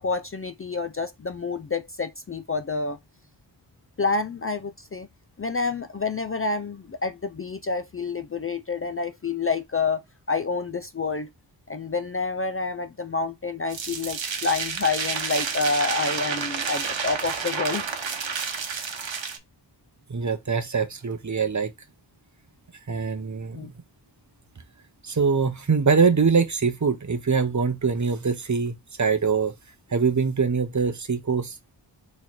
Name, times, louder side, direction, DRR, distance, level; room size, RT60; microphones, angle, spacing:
voice 1, 0.0-3.0 4.0-5.1 5.4-10.0 10.3-11.3 11.7-17.8 23.6-23.7, left 4 dB, 30° left, 0.4 m, -28 dB
sound 1, 13.7-19.4, right 5 dB, 85° right, 0.9 m, -30 dB
voice 2, 20.1-21.7 22.9-23.7 25.0-29.5 29.9-31.6, right 5 dB, 40° right, 0.8 m, -23 dB
3.8 x 3.2 x 4.3 m
wide cardioid pair, 70°, 44 cm